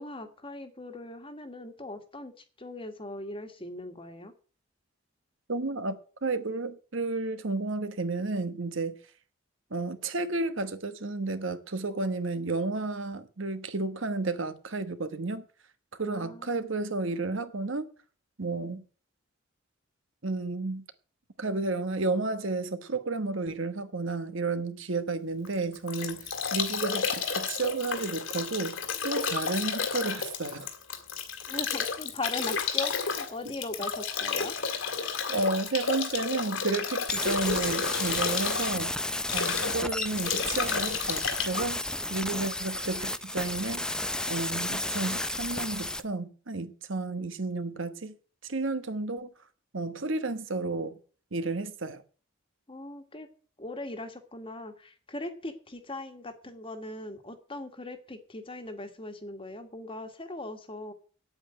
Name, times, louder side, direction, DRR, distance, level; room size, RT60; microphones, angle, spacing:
voice 1, 0.0-4.3 16.1-16.7 31.5-34.6 39.5-39.9 52.7-53.3 53.6-60.9, left 2 dB, 25° left, 1.7 m, -40 dB
voice 2, 5.5-6.0 6.2-9.0 9.7-15.4 16.0-17.9 18.4-18.8 20.2-20.8 21.4-28.8 29.0-30.7 35.3-38.9 39.3-41.8 42.1-48.1 48.4-49.3 49.7-51.0 51.3-52.0, right 3 dB, 65° right, 1.2 m, -32 dB
Bathtub (filling or washing) / Drip / Trickle dribble, 25.5-42.7, left 6 dB, 65° left, 2.2 m, -32 dB
sound 1, 37.1-46.0, left 1 dB, 5° left, 0.5 m, -33 dB
8.9 x 8.8 x 8.8 m
head